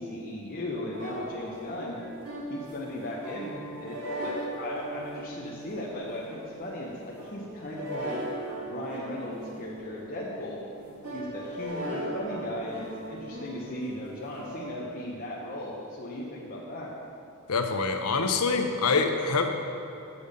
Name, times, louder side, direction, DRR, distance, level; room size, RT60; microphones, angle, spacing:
voice 1, 0.0-2.0 2.5-4.0 4.2-8.1 8.7-10.6 11.1-16.9, left 1 dB, 40° left, -4 dB, 0.8 m, -37 dB
sound 1, 0.9-14.6, right 1 dB, 80° right, 2.0 m, -39 dB
voice 2, 17.5-19.5, left 4 dB, 85° left, 5 dB, 0.7 m, -25 dB
7.0 x 6.7 x 5.2 m, 2.8 s
head